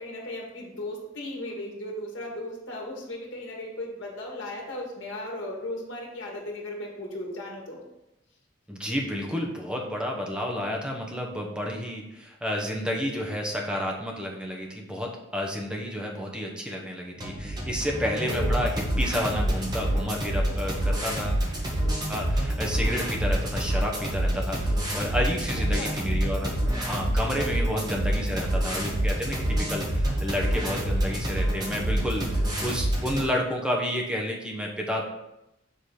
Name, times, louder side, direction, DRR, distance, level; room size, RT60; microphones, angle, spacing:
voice 1, 0.0-7.8 18.3-18.5 25.7-26.0, left 1 dB, 85° left, -2 dB, 1.8 m, -36 dB
voice 2, 8.7-21.4 22.1-35.0, equal, 5° right, 0 dB, 0.9 m, -31 dB
sound 1, 17.2-33.2, right 1 dB, 20° right, 1.7 m, -27 dB
6.8 x 3.9 x 4.9 m, 0.90 s
head